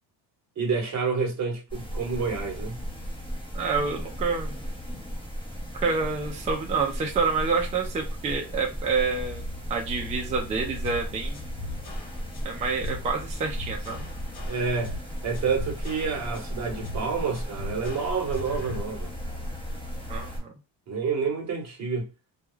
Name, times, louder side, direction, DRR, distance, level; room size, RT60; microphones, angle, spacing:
voice 1, 0.6-2.8 14.5-14.9 15.2-19.1 20.9-22.1, right 5 dB, 35° right, 0.9 m, -28 dB
sound 1, 1.7-20.4, equal, 10° left, 0.8 m, -35 dB
voice 2, 3.5-4.6 5.7-9.4 9.7-11.5 12.4-14.1 20.1-20.5, right 4 dB, 15° right, 0.3 m, -28 dB
sound 2, 10.8-18.8, left 1 dB, 80° left, 1.3 m, -41 dB
2.3 x 2.3 x 3.0 m
cardioid pair, 145°, 47 cm